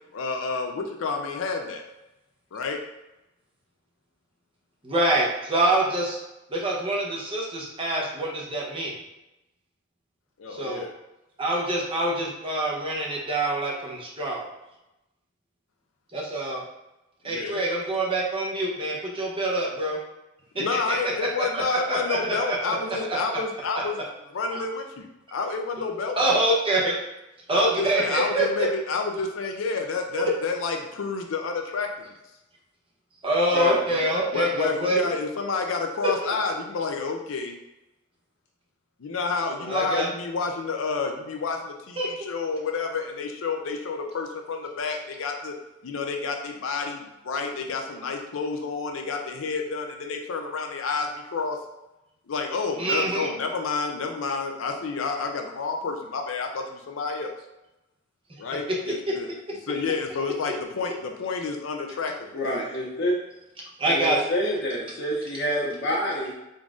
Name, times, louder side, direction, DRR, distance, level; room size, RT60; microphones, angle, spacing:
voice 1, 0.1-1.8 2.5-2.8 10.4-10.9 17.2-17.6 20.5-24.0 24.3-25.1 25.3-26.2 27.5-31.9 33.9-37.6 39.0-45.5 45.8-51.6 52.3-57.3 58.4-59.3 59.6-62.1, left 4 dB, 85° left, 3 dB, 0.5 m, -29 dB
voice 2, 4.8-6.2 6.5-8.9 10.5-10.9 11.4-14.5 16.1-16.6 17.2-20.0 20.6-22.6 23.1-23.2 24.5-24.6 26.2-26.9 27.5-28.7 33.2-35.1 39.7-40.1 42.0-42.1 52.8-53.3 63.8-64.2, right 1 dB, 30° right, -3 dB, 0.8 m, -25 dB
voice 3, 62.3-63.1 63.9-66.3, equal, 60° left, -3 dB, 1.0 m, -27 dB
3.9 x 3.6 x 2.4 m, 0.95 s
head